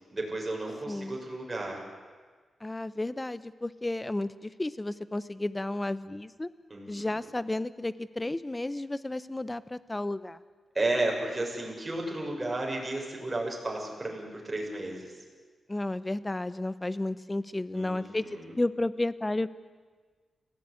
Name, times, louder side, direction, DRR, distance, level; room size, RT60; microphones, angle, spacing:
voice 1, 0.1-1.8 6.7-7.1 10.7-15.1 17.7-18.5, right 2 dB, 20° right, -1 dB, 6.6 m, -33 dB
voice 2, 0.9-1.2 2.6-6.5 6.9-10.4 15.7-19.5, left 2 dB, 15° left, 15 dB, 0.8 m, -32 dB
29.5 x 17.0 x 9.9 m, 1.5 s
wide cardioid pair, 155°, 0 cm